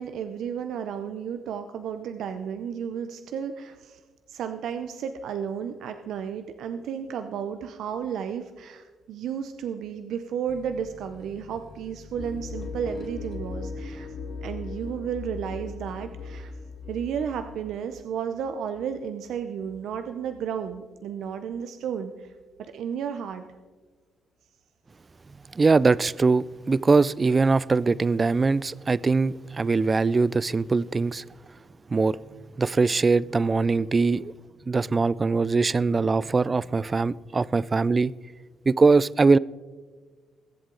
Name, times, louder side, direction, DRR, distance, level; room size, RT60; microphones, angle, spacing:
voice 1, 0.0-4.0 4.3-14.2 14.4-16.5 16.9-22.3 22.7-23.4, right 8 dB, 75° right, 0.6 m, -33 dB
sound 1, 10.5-17.8 18.2-18.9, left 4 dB, 40° left, 1.2 m, -52 dB
sound 2, 12.2-17.5, left 4 dB, 55° left, 1.9 m, -37 dB
voice 2, 25.5-31.2 31.9-32.2 32.6-34.3 34.7-38.1 38.7-39.4, right 4 dB, 30° right, 0.3 m, -22 dB
21.0 x 7.9 x 3.9 m
cardioid pair, 90°, 0 cm